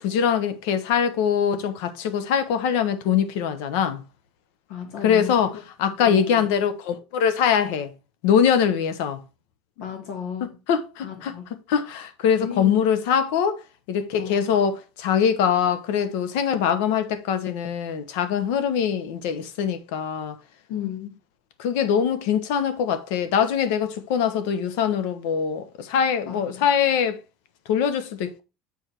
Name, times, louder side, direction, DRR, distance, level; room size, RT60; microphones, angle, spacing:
voice 1, 0.0-4.0 5.0-5.5 5.8-7.9 8.2-9.2 10.7-11.4 11.7-13.6 13.9-20.4 21.6-27.2 27.7-28.4, left 8 dB, 80° left, 1.1 m, -23 dB
voice 2, 4.7-5.6 6.0-6.4 9.8-10.6 11.0-11.5 12.4-12.8 14.2-14.5 20.7-21.1 26.3-26.7, left 8 dB, 65° left, 2.6 m, -34 dB
7.2 x 4.8 x 4.4 m
cardioid pair, 155°, 0 cm